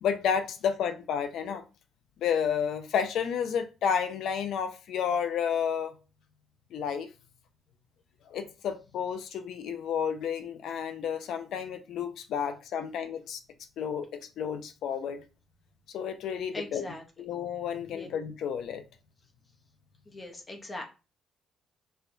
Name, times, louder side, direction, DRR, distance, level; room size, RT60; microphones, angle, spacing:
voice 1, 0.0-1.6 2.2-5.9 6.7-7.1 8.3-13.4 13.8-15.2 15.9-16.9 17.2-18.8, left 7 dB, 75° left, 0.5 m, -31 dB
voice 2, 16.5-17.0 17.9-18.1 20.1-20.8, left 1 dB, 30° left, 0.7 m, -40 dB
4.4 x 2.2 x 2.5 m
cardioid pair, 90°, 0 cm